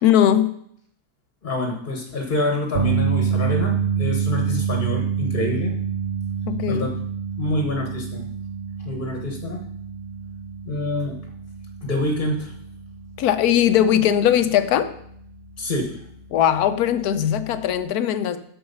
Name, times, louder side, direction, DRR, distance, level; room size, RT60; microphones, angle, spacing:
voice 1, 0.0-0.6 6.5-6.9 13.2-14.9 16.3-18.4, left 10 dB, 70° left, 12 dB, 1.1 m, -19 dB
voice 2, 1.4-5.7 6.7-6.9 7.4-8.3 8.8-9.6 10.7-11.1 11.8-12.5 15.6-16.0, left 2 dB, 35° left, 2 dB, 1.2 m, -26 dB
sound 1, 2.8-15.0 15.3-15.6 17.8-17.9, right 7 dB, 55° right, 0.6 m, -27 dB
7.9 x 6.4 x 5.4 m, 0.67 s
omnidirectional pair, 1.8 m